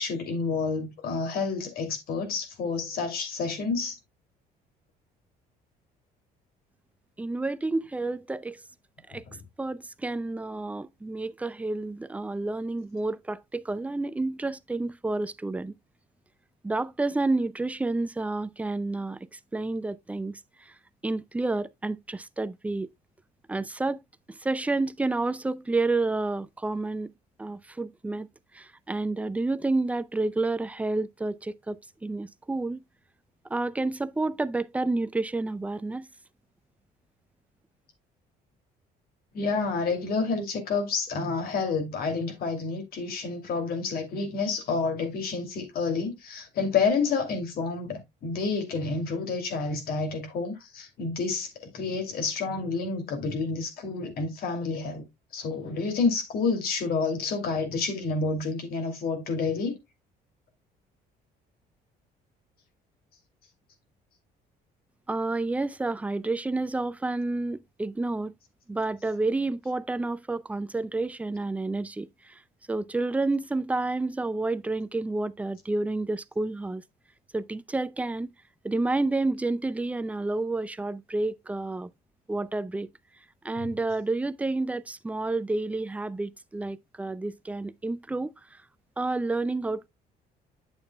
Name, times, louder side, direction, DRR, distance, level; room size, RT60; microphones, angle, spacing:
voice 1, 0.0-4.0 9.3-9.4 39.3-55.0 55.3-59.8 83.6-83.7, left 4 dB, 65° left, 2.5 m, -29 dB
voice 2, 7.2-8.6 9.1-9.2 9.6-15.7 16.6-20.7 21.0-22.9 23.5-24.0 24.3-27.1 27.4-28.3 28.5-32.8 33.5-36.1 65.1-68.3 68.7-72.4 72.7-76.8 77.3-78.3 78.6-81.9 82.3-82.9 83.4-88.6 89.0-89.9, right 2 dB, 10° right, 0.4 m, -30 dB
8.8 x 7.2 x 2.2 m
cardioid pair, 110°, 17 cm